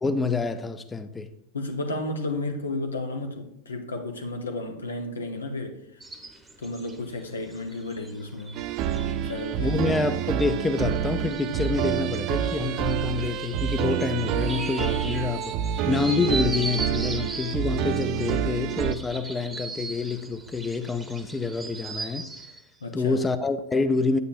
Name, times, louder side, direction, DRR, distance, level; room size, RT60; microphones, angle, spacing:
voice 1, 0.0-1.3 9.6-15.5 15.9-22.3 22.9-24.2, left 4 dB, 15° left, 0.4 m, -27 dB
voice 2, 1.5-6.0 6.6-8.6 9.3-9.9 22.8-23.2, left 2 dB, 90° left, 0.8 m, -32 dB
sound 1, 6.0-22.6, right 3 dB, 10° right, 0.8 m, -39 dB
sound 2, 8.5-18.9, right 10 dB, 50° right, 0.3 m, -28 dB
7.9 x 6.6 x 2.5 m
hypercardioid pair, 95°, 0 cm